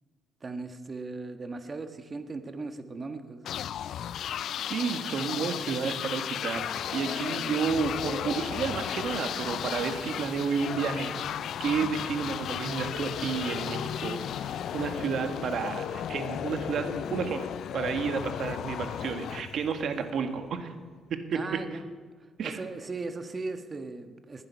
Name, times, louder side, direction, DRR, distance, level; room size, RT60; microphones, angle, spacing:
voice 1, 0.4-3.4 21.3-21.9 22.4-24.5, right 3 dB, 35° right, 7 dB, 1.4 m, -38 dB
sound 1, 3.4-20.2, left 10 dB, 70° left, 0.4 m, -34 dB
voice 2, 4.7-11.2 11.6-17.5 17.7-20.7 21.1-21.6 22.4-22.6, right 6 dB, 65° right, 7 dB, 1.6 m, -31 dB
sound 2, 7.5-17.0, equal, 5° left, 5.6 m, -56 dB
20.5 x 10.5 x 5.8 m, 1.5 s
cardioid pair, 90°, 0 cm